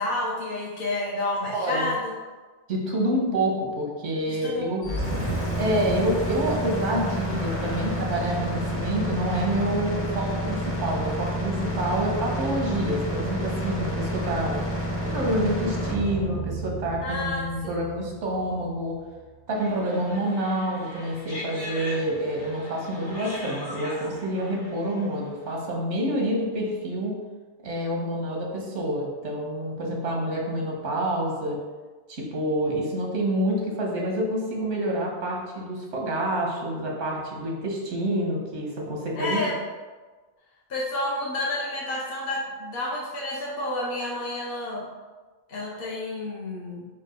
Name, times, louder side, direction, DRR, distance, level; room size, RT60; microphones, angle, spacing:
voice 1, 0.0-2.1 4.3-4.7 17.0-17.9 39.2-39.5 40.7-44.8 45.5-46.9, left 2 dB, 55° left, -5 dB, 1.0 m, -30 dB
voice 2, 1.5-1.9 2.7-4.8 5.6-14.6 15.0-19.0 19.5-27.1 27.6-31.6 32.1-39.4, right 1 dB, 85° right, -1 dB, 1.3 m, -27 dB
sound 1, 4.8-18.8, equal, 15° left, 0.7 m, -29 dB
sound 2, 19.5-25.4, left 1 dB, 90° left, 1.5 m, -40 dB
4.5 x 2.4 x 4.9 m, 1.3 s
omnidirectional pair, 1.2 m